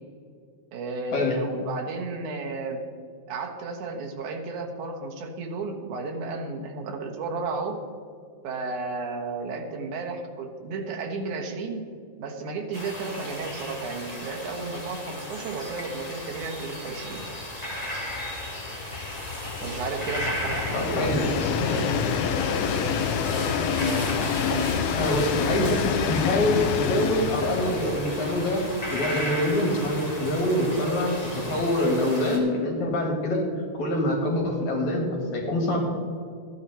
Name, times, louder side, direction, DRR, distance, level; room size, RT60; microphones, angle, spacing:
voice 1, 0.7-2.8 3.3-7.8 8.4-11.8 12.2-17.2 19.6-21.9, right 3 dB, 75° right, 3 dB, 2.6 m, -33 dB
sound 1, 12.7-32.4, left 1 dB, 15° left, 1.7 m, -35 dB
Train, 13.4-13.5 13.8-13.9 14.2-31.6, left 7 dB, 85° left, 2.1 m, -29 dB
voice 2, 20.7-21.3 25.0-35.8, left 1 dB, 65° left, 0 dB, 3.4 m, -25 dB
14.0 x 9.5 x 4.3 m, 2.2 s
omnidirectional pair, 3.6 m